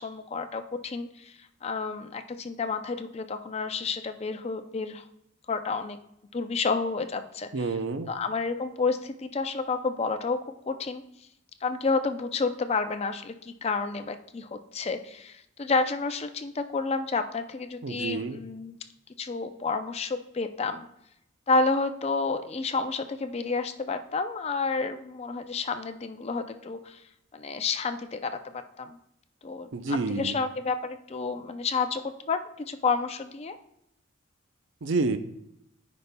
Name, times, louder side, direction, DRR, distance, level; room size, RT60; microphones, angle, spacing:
voice 1, 0.0-5.1 5.5-6.0 6.3-7.8 8.1-10.4 10.7-11.0 11.6-18.8 19.2-20.9 21.5-27.0 27.3-29.0 29.4-32.0 32.3-33.5, left 4 dB, 30° left, 8 dB, 0.4 m, -30 dB
voice 2, 7.5-8.1 17.8-18.4 29.7-30.4 34.8-35.2, right 3 dB, 65° right, 10 dB, 0.5 m, -28 dB
13.5 x 5.3 x 2.2 m, 0.78 s
head